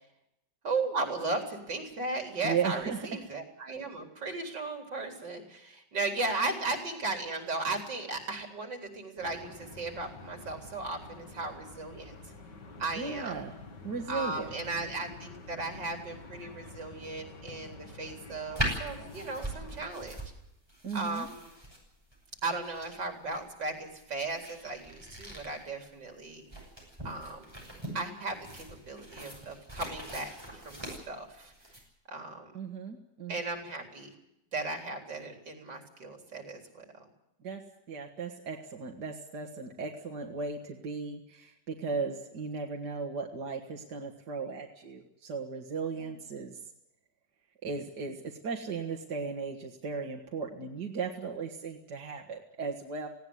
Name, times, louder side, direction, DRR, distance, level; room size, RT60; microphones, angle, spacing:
voice 1, 0.6-12.1 12.8-13.4 14.1-20.2 20.9-21.5 22.4-26.4 27.0-27.5 27.9-31.5 32.1-32.5 33.3-34.1 34.5-37.1 45.9-46.1, right 3 dB, 85° right, 4 dB, 4.5 m, -36 dB
voice 2, 2.4-3.2 13.0-13.5 13.8-14.5 20.8-21.3 32.5-33.4 37.4-37.6 37.9-46.6 47.6-53.1, right 5 dB, 70° right, 1 dB, 2.4 m, -36 dB
sound 1, 9.2-19.9, left 3 dB, 75° left, 3.0 m, -48 dB
sound 2, 18.5-31.8, right 1 dB, 15° right, 7.0 m, -41 dB
19.0 x 17.0 x 9.5 m, 0.84 s
omnidirectional pair, 1.9 m